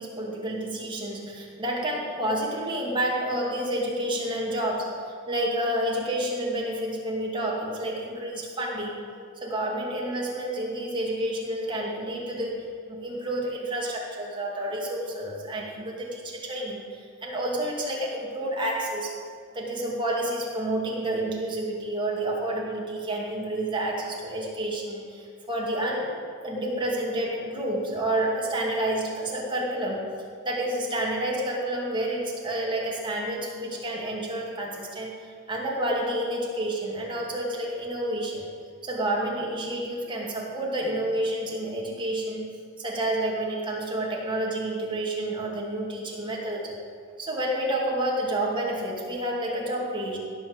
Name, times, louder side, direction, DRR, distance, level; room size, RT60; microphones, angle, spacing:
voice 1, 0.0-9.0 9.4-19.1 19.5-26.1 26.4-30.1 30.4-38.5 38.8-42.5 42.8-46.7 47.2-50.2, right 1 dB, 20° right, -3 dB, 2.4 m, -29 dB
16.5 x 5.8 x 8.1 m, 2.3 s
head